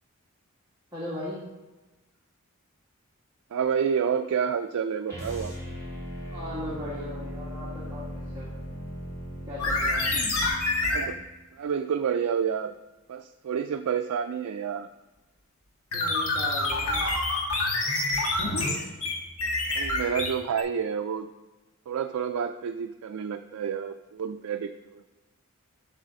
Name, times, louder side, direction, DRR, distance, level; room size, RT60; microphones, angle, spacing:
voice 1, 0.9-1.4 6.3-8.0 8.3-8.5 9.5-10.0 15.9-17.1, left 1 dB, 15° right, -8 dB, 1.5 m, -37 dB
voice 2, 3.5-5.5 10.8-11.2 11.5-12.8 13.1-14.9 19.7-21.3 21.9-25.0, right 7 dB, 85° right, 6 dB, 0.4 m, -29 dB
sound 1, 5.1-11.2, equal, 15° left, 2.2 m, -38 dB
sound 2, 9.6-11.1 15.9-20.6, left 2 dB, 85° left, 1.4 m, -27 dB
8.1 x 3.4 x 6.3 m, 1.1 s
head